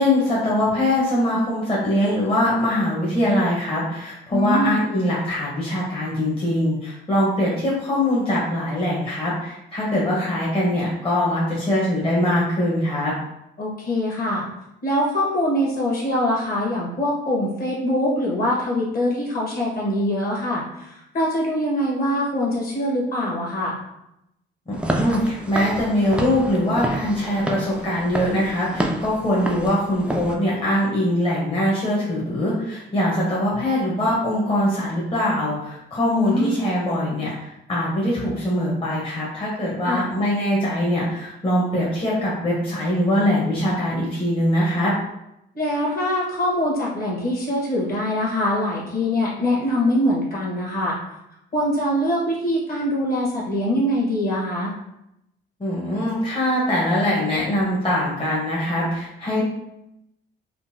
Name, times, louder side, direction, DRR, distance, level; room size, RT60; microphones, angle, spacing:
voice 1, 0.0-13.1 24.7-44.9 55.6-59.4, left 1 dB, 25° left, -6 dB, 0.9 m, -22 dB
voice 2, 4.3-4.7 13.6-14.4 14.8-23.8 36.1-36.6 39.8-40.1 45.5-51.0 51.5-54.7, left 1 dB, 45° left, -3 dB, 1.3 m, -23 dB
Walk footsteps / Siren, 24.7-30.3, right 1 dB, 5° right, 0.3 m, -29 dB
3.7 x 2.0 x 2.7 m, 0.83 s
cardioid pair, 90°, 20 cm